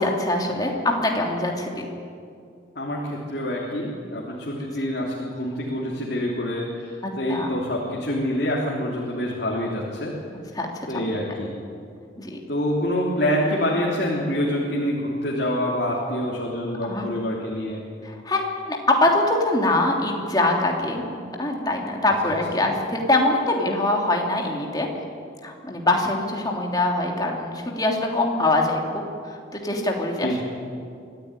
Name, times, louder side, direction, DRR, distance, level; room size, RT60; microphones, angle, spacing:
voice 1, 0.0-1.9 7.3-7.5 10.5-10.7 10.9-11.1 12.2-12.4 16.8-17.1 18.0-24.9 25.4-30.4, left 2 dB, 20° left, 1 dB, 2.9 m, -23 dB
voice 2, 2.7-10.1 10.9-11.5 12.5-17.8 30.2-30.4, equal, 60° left, -4 dB, 3.3 m, -26 dB
25.0 x 14.5 x 9.9 m, 2.4 s
head